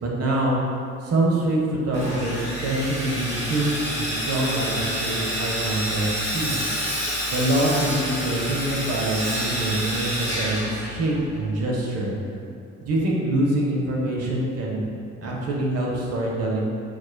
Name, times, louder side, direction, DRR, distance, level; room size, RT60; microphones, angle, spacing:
voice 1, 0.0-0.6 1.0-6.7 7.3-12.1 12.8-14.9 15.2-16.6, right 1 dB, 55° right, -3 dB, 0.8 m, -25 dB
Sawing, 1.9-11.4, equal, 20° right, 1.4 m, -28 dB
4.7 x 2.4 x 2.2 m, 2.4 s
cardioid pair, 90°, 30 cm